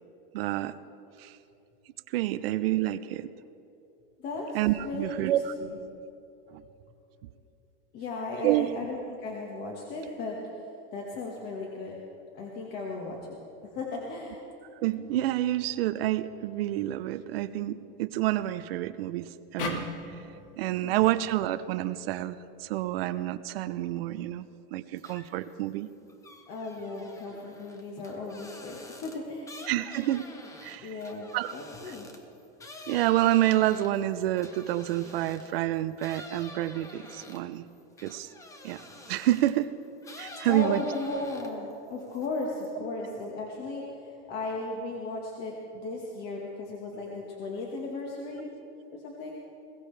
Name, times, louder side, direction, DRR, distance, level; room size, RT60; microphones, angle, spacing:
voice 1, 0.3-0.7 1.2-1.4 2.1-3.3 4.5-5.5 6.5-6.6 8.4-8.7 14.8-20.2 20.6-24.5 24.7-25.9 29.7-30.3 30.6-30.9 31.3-31.5 32.9-37.7 38.0-38.3 38.6-38.8 39.1-39.7 40.2-40.8, right 14 dB, 75° right, 13 dB, 0.7 m, -28 dB
voice 2, 4.8-5.7 7.9-10.6 10.9-12.0 12.3-13.4 13.6-14.4 20.8-21.1 26.5-29.6 30.8-32.1 40.5-48.5 48.9-49.3, left 2 dB, 35° left, -2 dB, 1.6 m, -36 dB
sound 1, 19.6-22.8, left 4 dB, 65° left, 1.8 m, -39 dB
sound 2, 25.0-25.5 25.9-35.6 36.0-39.6 40.0-41.7 42.0-42.7, left 2 dB, 10° left, 0.8 m, -48 dB
21.0 x 17.0 x 3.4 m, 2.8 s
supercardioid pair, 165°, 30 cm